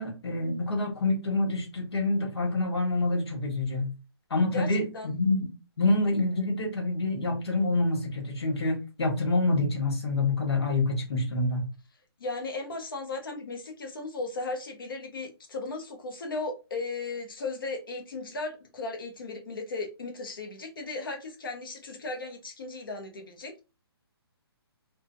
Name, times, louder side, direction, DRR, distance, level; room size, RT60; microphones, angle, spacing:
voice 1, 0.0-3.9 4.3-11.7, left 2 dB, 75° left, 1.5 m, -27 dB
voice 2, 12.2-23.6, left 3 dB, 55° left, 1.0 m, -36 dB
2.8 x 2.3 x 2.7 m
hypercardioid pair, 175°, 14 cm